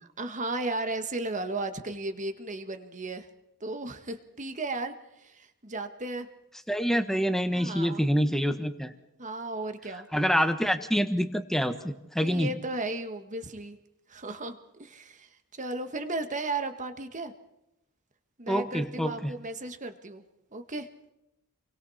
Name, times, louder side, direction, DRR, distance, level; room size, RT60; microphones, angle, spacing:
voice 1, 0.0-3.3 3.6-6.3 7.5-8.0 9.2-10.1 12.2-13.8 14.1-15.3 15.6-17.3 18.4-20.2 20.5-20.9, right 2 dB, 35° right, 7 dB, 1.7 m, -35 dB
voice 2, 6.7-8.9 10.1-12.5 18.5-19.3, equal, ahead, 8 dB, 1.4 m, -26 dB
28.5 x 23.0 x 4.3 m, 0.87 s
head